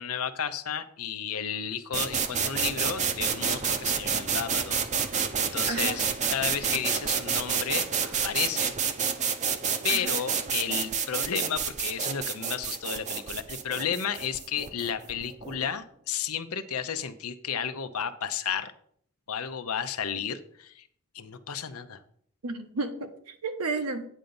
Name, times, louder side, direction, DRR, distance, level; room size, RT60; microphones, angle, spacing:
voice 1, 0.0-6.0 6.3-8.7 9.8-18.7 19.3-20.9 21.1-22.0, left 8 dB, 70° left, 10 dB, 0.7 m, -33 dB
sound 1, 1.9-15.6, right 6 dB, 30° right, 0.7 m, -29 dB
voice 2, 5.7-6.0 9.9-10.2 22.4-24.1, right 3 dB, 85° right, 6 dB, 1.2 m, -32 dB
9.1 x 3.9 x 7.0 m, 0.62 s
head